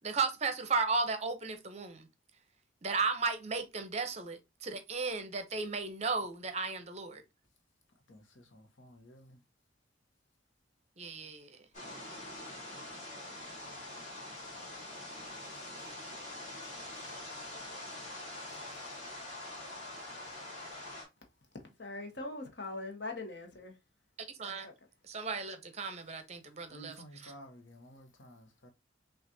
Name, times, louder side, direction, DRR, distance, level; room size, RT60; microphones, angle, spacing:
voice 1, 0.0-2.1 2.8-7.2 11.0-11.6 24.2-24.7 25.0-27.3, right 4 dB, 35° right, 0.6 m, -35 dB
voice 2, 8.1-9.4 26.7-28.7, right 1 dB, 90° left, 1.0 m, -53 dB
sound 1, 11.7-21.0, left 1 dB, 35° left, 2.3 m, -44 dB
voice 3, 21.8-23.8 24.6-24.7, left 2 dB, 60° left, 1.0 m, -41 dB
6.0 x 2.4 x 2.7 m
head